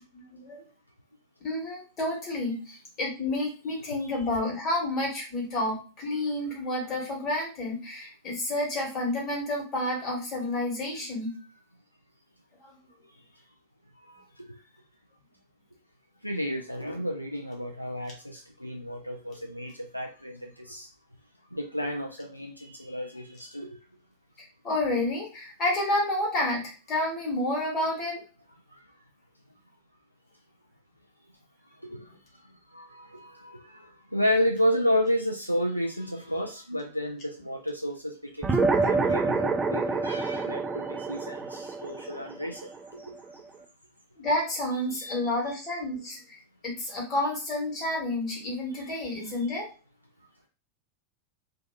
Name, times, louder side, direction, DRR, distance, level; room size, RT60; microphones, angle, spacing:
voice 1, 0.1-0.6 1.4-11.4 12.6-12.7 24.6-28.2 38.7-39.1 44.2-46.4 46.6-49.7, left 1 dB, 30° left, 1.3 m, -30 dB
voice 2, 16.2-20.9 21.5-23.7 31.9-32.0 32.7-42.6 42.9-43.0 45.0-45.2, equal, 90° left, 0.3 m, -31 dB
sound 1, 38.4-43.2, right 3 dB, 15° right, 0.3 m, -27 dB
2.6 x 2.3 x 2.2 m
figure-of-eight pair, 90°, 0 cm